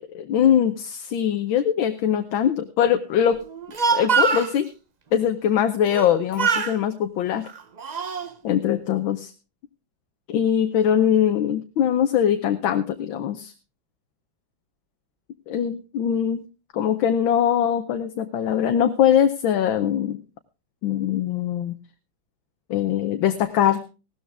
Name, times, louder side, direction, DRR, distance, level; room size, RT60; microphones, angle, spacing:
voice 1, 0.0-3.4 3.9-4.7 5.1-7.5 8.4-9.3 10.3-13.5 15.5-16.4 16.7-20.2 20.8-21.7 22.7-23.8, left 9 dB, 90° left, 7 dB, 1.6 m, -22 dB
Speech, 3.5-4.5 5.9-6.1 6.4-6.8 7.5-8.3, right 5 dB, 75° right, 0.4 m, -23 dB
17.0 x 13.0 x 3.4 m, 0.31 s
omnidirectional pair, 2.1 m